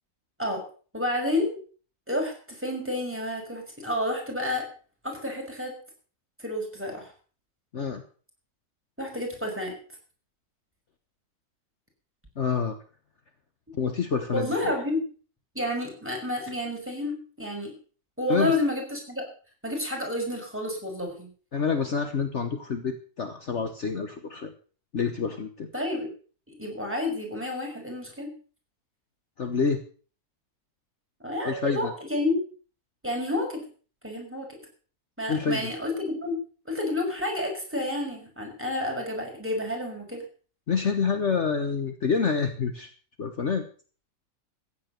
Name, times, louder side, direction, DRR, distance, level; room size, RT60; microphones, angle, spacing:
voice 1, 0.9-1.6 2.1-4.7 5.0-5.7 6.4-7.1 9.0-9.7 14.3-15.0 15.5-17.7 18.2-19.3 19.6-21.3 25.7-26.1 26.6-28.3 31.2-32.4 33.0-33.6 34.0-34.6 35.2-36.4 36.7-40.2, left 1 dB, 10° right, 0 dB, 5.8 m, -30 dB
voice 2, 12.4-12.8 13.8-14.8 18.3-18.6 21.5-24.5 24.9-25.7 29.4-29.8 31.4-31.9 35.3-35.7 40.7-42.9 43.2-43.7, left 5 dB, 50° left, 7 dB, 1.5 m, -27 dB
15.0 x 9.4 x 6.7 m, 0.41 s
omnidirectional pair, 1.6 m